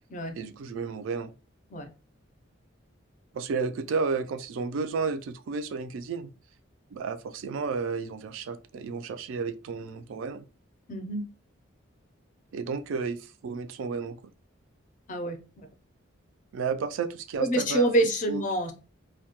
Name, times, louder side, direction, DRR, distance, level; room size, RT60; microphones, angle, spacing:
voice 1, 0.3-1.3 3.3-6.3 6.9-10.4 12.5-13.2 13.4-14.2 16.5-17.8 18.3-18.4, right 5 dB, 75° right, 0.3 m, -32 dB
voice 2, 10.9-11.2 15.1-15.4 17.4-18.7, right 1 dB, 40° left, 0.4 m, -26 dB
2.2 x 2.1 x 2.8 m
head